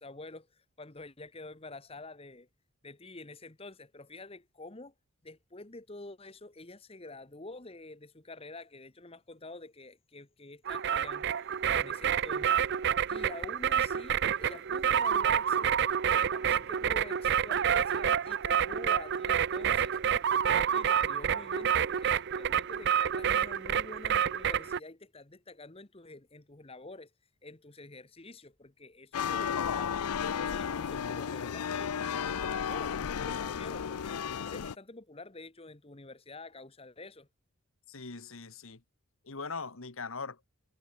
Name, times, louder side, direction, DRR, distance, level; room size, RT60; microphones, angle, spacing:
voice 1, 0.0-2.5 2.8-4.9 5.2-11.4 11.7-12.7 13.1-15.7 16.0-20.0 20.3-27.1 27.4-30.1 30.4-37.3, left 2 dB, 25° left, 1.2 m, -48 dB
sound 1, 10.7-24.8, right 8 dB, 50° right, 0.5 m, -28 dB
sound 2, 29.1-34.7, left 7 dB, 90° left, 0.5 m, -33 dB
voice 2, 37.9-38.8 39.2-40.4, left 4 dB, 65° left, 1.5 m, -40 dB
head